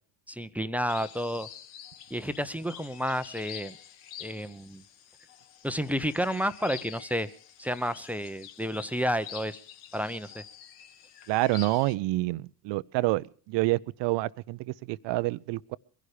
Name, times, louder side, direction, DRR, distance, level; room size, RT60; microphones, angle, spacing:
voice 1, 0.3-1.5 2.1-3.8 4.2-4.8 5.6-7.3 7.6-9.6 9.9-10.4, equal, 5° right, 0.7 m, -31 dB
sound 1, 0.9-11.9, left 10 dB, 75° left, 1.6 m, -47 dB
voice 2, 11.3-15.8, right 20 dB, 60° right, 0.6 m, -28 dB
22.5 x 11.5 x 4.9 m
supercardioid pair, 80°, 50 cm